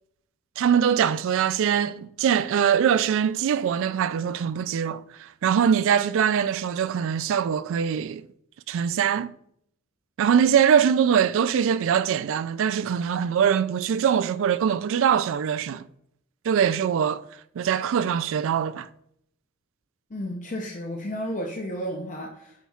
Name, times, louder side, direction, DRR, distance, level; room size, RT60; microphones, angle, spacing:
voice 1, 0.6-8.2 8.7-9.3 10.2-15.9 16.4-17.2 17.6-18.9, right 8 dB, 60° right, 0.3 m, -22 dB
voice 2, 20.1-22.7, equal, 35° left, 0.6 m, -32 dB
7.0 x 5.7 x 2.4 m
head